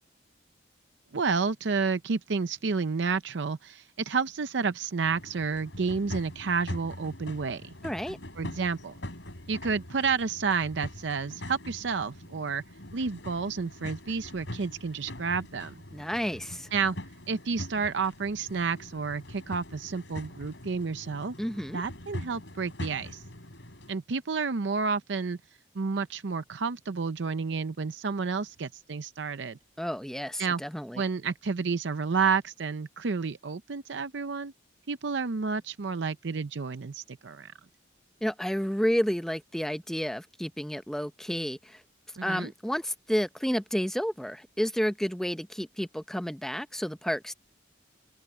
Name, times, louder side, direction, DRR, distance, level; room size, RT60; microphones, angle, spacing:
voice 1, 1.1-7.7 8.4-8.9 9.5-12.6 12.9-15.8 16.7-17.0 17.3-21.3 21.7-23.2 23.9-25.4 25.7-29.6 30.4-30.6 31.0-34.5 34.9-37.5 42.2-42.5, right 5 dB, 70° right, 0.6 m, -30 dB
sound 1, 5.0-23.9, left 1 dB, 75° left, 4.5 m, -43 dB
voice 2, 7.8-8.2 15.9-16.7 21.4-21.8 29.8-31.0 38.2-41.8 42.2-47.3, equal, ahead, 0.6 m, -31 dB
open air
head